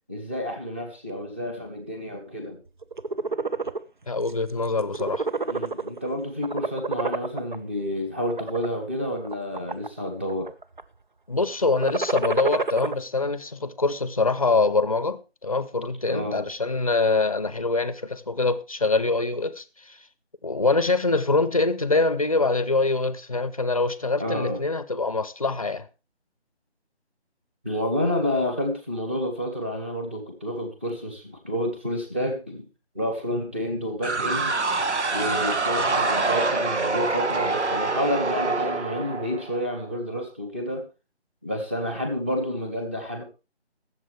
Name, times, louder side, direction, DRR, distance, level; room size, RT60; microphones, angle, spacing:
voice 1, 0.1-2.6 5.5-10.5 16.1-16.5 24.2-24.6 27.6-32.7 32.9-34.6 35.1-40.8 41.4-43.2, equal, 10° right, 0.9 m, -29 dB
sound 1, 2.8-3.8 4.3-4.5 4.8-6.1 6.4-7.6 8.2-8.7 9.2-10.0 10.3-10.8 11.7-12.9, right 3 dB, 45° right, 0.7 m, -28 dB
voice 2, 4.1-5.3 11.3-20.0 20.4-25.9, left 3 dB, 30° left, 0.7 m, -24 dB
sound 2, 34.0-39.8, right 3 dB, 80° right, 1.4 m, -25 dB
21.0 x 7.3 x 3.2 m
figure-of-eight pair, 165°, 34 cm